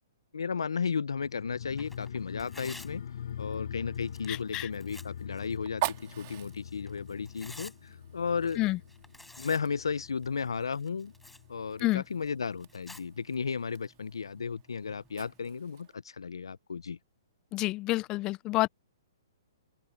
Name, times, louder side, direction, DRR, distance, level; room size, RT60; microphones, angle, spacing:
voice 1, 0.3-3.0 3.4-8.6 9.4-11.1 11.5-17.0, left 5 dB, 90° left, 0.7 m, -34 dB
sound 1, 1.2-12.0 12.3-12.4, left 9 dB, 65° left, 4.9 m, -44 dB
Tearing, 1.7-15.5, left 2 dB, 5° left, 7.5 m, -55 dB
Fire, 2.7-16.0, right 20 dB, 45° right, 2.9 m, -45 dB
voice 2, 4.3-4.7 8.6-8.8 11.8-12.0 17.5-18.7, left 19 dB, 25° left, 0.3 m, -29 dB
open air
hypercardioid pair, 140°, 2 cm